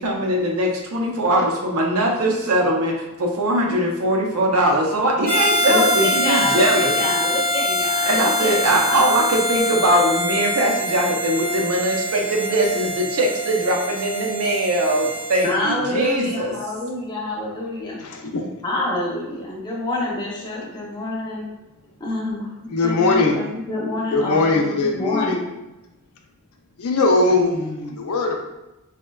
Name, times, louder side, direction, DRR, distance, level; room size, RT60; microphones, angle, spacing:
voice 1, 0.0-7.0 8.1-16.6, right 1 dB, 75° right, 1 dB, 0.6 m, -21 dB
Harmonica, 5.2-15.5, left 1 dB, 15° right, 0.7 m, -24 dB
voice 2, 5.7-9.0 15.4-18.0 18.6-21.5 22.0-22.5 22.8-25.5, left 1 dB, 20° left, -4 dB, 0.6 m, -27 dB
voice 3, 18.0-18.5 22.7-23.4 24.1-25.4 26.8-28.5, left 3 dB, 85° left, 2 dB, 0.5 m, -20 dB
3.6 x 2.1 x 2.2 m, 0.99 s
head